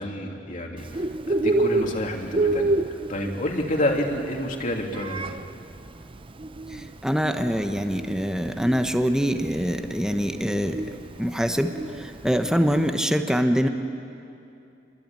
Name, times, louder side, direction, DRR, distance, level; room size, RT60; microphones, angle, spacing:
voice 1, 0.0-2.7 3.1-5.3, left 1 dB, 45° left, 1 dB, 3.0 m, -29 dB
Bird, 0.8-12.9, right 2 dB, 30° right, 0.7 m, -29 dB
voice 2, 6.7-10.8 11.2-13.7, equal, 5° right, 6 dB, 1.1 m, -24 dB
27.0 x 23.0 x 9.1 m, 2.6 s
head